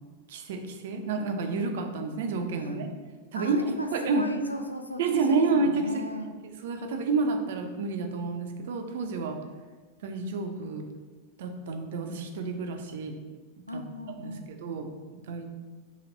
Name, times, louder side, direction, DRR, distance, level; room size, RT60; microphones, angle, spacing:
voice 1, 0.3-2.9 3.3-4.2 5.0-6.0 6.4-9.4 10.0-10.8 11.4-13.1 13.7-13.8 14.2-15.5, right 3 dB, 55° right, 5 dB, 0.4 m, -29 dB
voice 2, 3.3-6.3 13.7-14.5, left 1 dB, 85° left, 5 dB, 0.3 m, -36 dB
3.0 x 2.8 x 3.7 m, 1.3 s
figure-of-eight pair, 90°, 0 cm